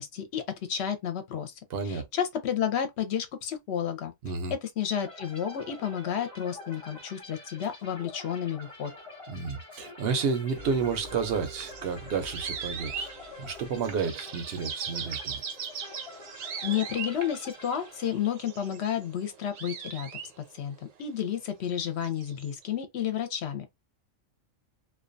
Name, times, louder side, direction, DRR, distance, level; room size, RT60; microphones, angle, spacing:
voice 1, 0.0-1.6 1.8-4.1 4.5-8.9 16.6-20.1 20.5-23.8, left 9 dB, 65° left, 0.8 m, -31 dB
voice 2, 1.7-2.1 4.2-4.5 9.3-13.1 13.4-15.4, right 5 dB, 60° right, 0.7 m, -31 dB
sound 1, 5.0-18.5, left 2 dB, 30° left, 0.8 m, -47 dB
sound 2, 10.5-20.8 21.8-22.6, right 6 dB, 85° right, 1.0 m, -40 dB
2.3 x 2.2 x 2.5 m
omnidirectional pair, 1.3 m